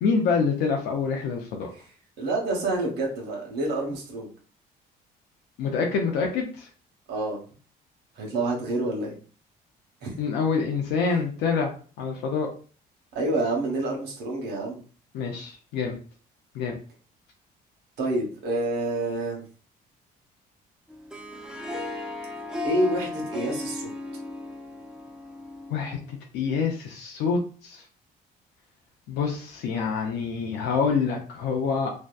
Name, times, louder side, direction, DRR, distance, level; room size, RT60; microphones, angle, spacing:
voice 1, 0.0-1.7 5.6-6.7 10.2-11.7 12.0-12.5 15.1-16.0 16.5-16.7 25.7-27.8 29.1-31.9, left 5 dB, 80° left, 1 dB, 0.5 m, -26 dB
voice 2, 2.2-4.3 7.1-7.4 8.2-9.1 10.0-10.2 13.1-14.8 18.0-19.4 22.6-23.9, right 2 dB, 75° right, -1 dB, 0.9 m, -28 dB
Harp, 20.9-26.1, left 2 dB, 5° right, 0.4 m, -35 dB
2.6 x 2.1 x 2.2 m, 0.39 s
cardioid pair, 110°, 17 cm